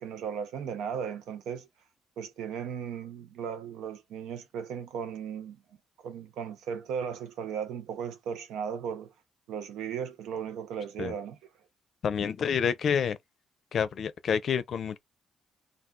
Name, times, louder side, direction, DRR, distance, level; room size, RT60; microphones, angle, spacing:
voice 1, 0.0-1.7 2.2-5.6 6.0-9.1 9.5-11.4, right 7 dB, 85° right, 0.7 m, -36 dB
voice 2, 12.0-13.2 13.7-15.0, left 7 dB, 60° left, 0.5 m, -28 dB
2.4 x 2.3 x 3.6 m
cardioid pair, 90°, 0 cm